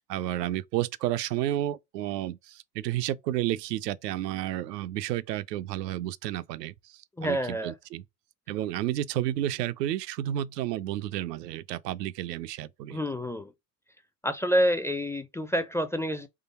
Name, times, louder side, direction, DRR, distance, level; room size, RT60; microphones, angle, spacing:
voice 1, 0.0-8.0 8.5-13.0, right 13 dB, 85° right, 0.6 m, -31 dB
voice 2, 7.2-7.8 12.9-13.5 14.2-16.3, equal, 5° left, 0.4 m, -28 dB
3.8 x 3.3 x 4.1 m
hypercardioid pair, 75°, 48 cm